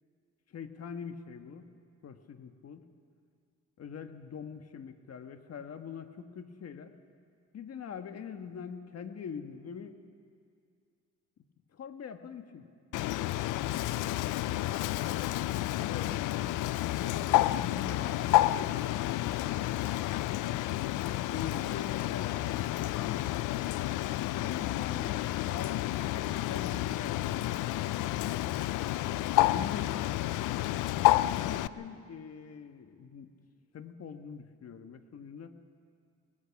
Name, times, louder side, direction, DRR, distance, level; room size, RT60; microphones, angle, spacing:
voice 1, 0.5-1.7 2.0-2.8 3.8-6.9 7.5-10.0 11.7-12.7 15.9-19.9 21.2-23.3 24.3-28.1 29.4-29.8 31.2-33.3 33.7-35.5, left 7 dB, 55° left, 8 dB, 1.5 m, -44 dB
Bird, 12.9-31.7, left 15 dB, 85° left, 0.5 m, -30 dB
24.0 x 19.5 x 5.9 m, 2.2 s
cardioid pair, 90°, 30 cm